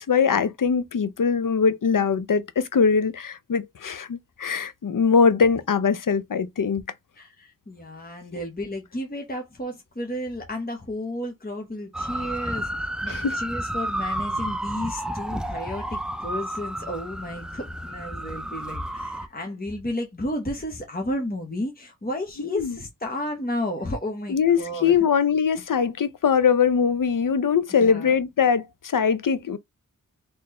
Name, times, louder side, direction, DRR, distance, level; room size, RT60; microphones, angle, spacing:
voice 1, 0.0-6.8 13.1-13.4 22.5-22.7 24.3-29.6, left 6 dB, 70° left, 0.6 m, -22 dB
voice 2, 7.2-25.0 27.8-28.1, left 1 dB, 25° left, 1.2 m, -32 dB
sound 1, 11.9-19.3, right 1 dB, ahead, 0.4 m, -31 dB
4.2 x 3.2 x 3.2 m
wide cardioid pair, 55°, 33 cm